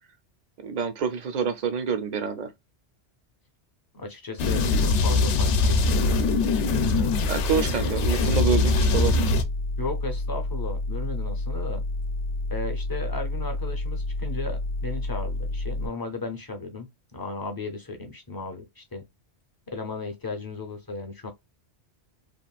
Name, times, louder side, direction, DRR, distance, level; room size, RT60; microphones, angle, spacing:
voice 1, 0.6-2.5 7.3-9.3, right 6 dB, 50° right, 0.6 m, -27 dB
voice 2, 3.9-6.3 6.7-7.2 7.5-8.0 9.8-11.8 12.5-19.0 19.7-21.3, left 3 dB, 25° left, 0.5 m, -35 dB
sound 1, 4.4-9.4, left 3 dB, 90° left, 0.9 m, -23 dB
sound 2, 4.4-15.9, left 2 dB, 60° left, 0.8 m, -30 dB
3.0 x 2.4 x 2.3 m
omnidirectional pair, 1.2 m